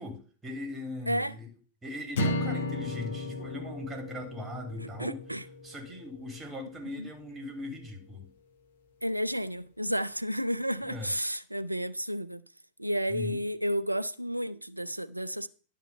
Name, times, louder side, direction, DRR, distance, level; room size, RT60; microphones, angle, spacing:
voice 1, 0.0-1.5 1.8-5.2 5.6-8.3 10.8-11.1 13.1-13.4, left 2 dB, 15° right, 3.4 m, -39 dB
sound 1, 2.2-6.5, left 1 dB, 60° left, 1.6 m, -34 dB
voice 2, 4.8-5.4 7.0-7.1 9.0-12.4 12.8-15.5, equal, 90° right, 0.5 m, -32 dB
11.0 x 5.1 x 6.7 m
figure-of-eight pair, 90°, 0 cm